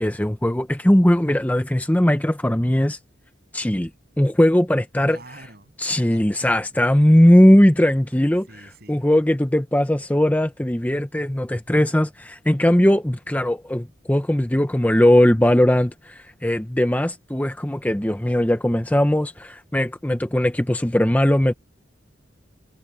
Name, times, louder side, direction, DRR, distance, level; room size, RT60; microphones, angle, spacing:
voice 1, 0.0-3.0 3.5-3.9 4.2-5.2 5.8-8.5 8.9-21.5, left 1 dB, 10° left, 0.7 m, -19 dB
voice 2, 5.1-6.7 8.5-9.0, right 2 dB, 55° right, 7.9 m, -46 dB
head